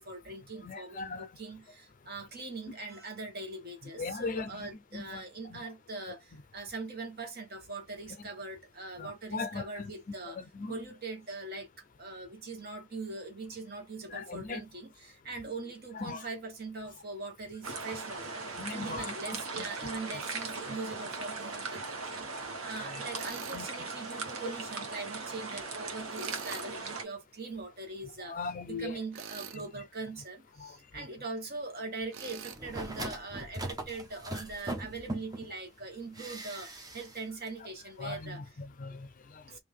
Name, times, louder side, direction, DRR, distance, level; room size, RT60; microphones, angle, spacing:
voice 1, 0.0-10.4 10.7-28.4 28.7-38.4 39.5-39.6, right 3 dB, 45° right, 1.2 m, -42 dB
voice 2, 0.6-1.4 4.0-5.2 5.5-5.7 9.0-9.9 10.2-10.8 14.1-14.6 15.9-16.3 18.6-20.0 20.7-20.8 22.8-23.0 23.5-23.9 28.0-29.0 29.5-29.8 30.6-31.1 38.0-39.6, left 4 dB, 40° left, 0.5 m, -40 dB
sound 1, 17.6-27.0, right 3 dB, 80° right, 1.2 m, -39 dB
Tools, 23.1-23.6 26.1-26.7 29.1-29.7 32.1-32.6, right 8 dB, 60° right, 0.5 m, -44 dB
sound 2, 32.5-35.5 36.1-37.2 37.5-37.6, right 2 dB, 20° right, 0.7 m, -40 dB
3.4 x 2.6 x 3.6 m
head